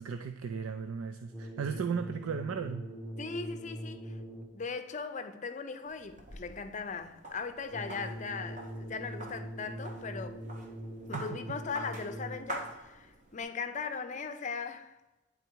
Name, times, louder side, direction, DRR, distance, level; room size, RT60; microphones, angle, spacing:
voice 1, 0.0-2.9 11.1-11.3, right 6 dB, 85° right, 0.4 m, -35 dB
sound 1, 1.3-4.7 7.7-12.7, equal, ahead, 0.8 m, -43 dB
voice 2, 3.2-4.1 4.5-10.4 11.1-15.0, left 5 dB, 35° left, 0.5 m, -39 dB
sound 2, 5.9-13.4, right 1 dB, 35° right, 1.0 m, -46 dB
9.2 x 4.0 x 4.5 m
head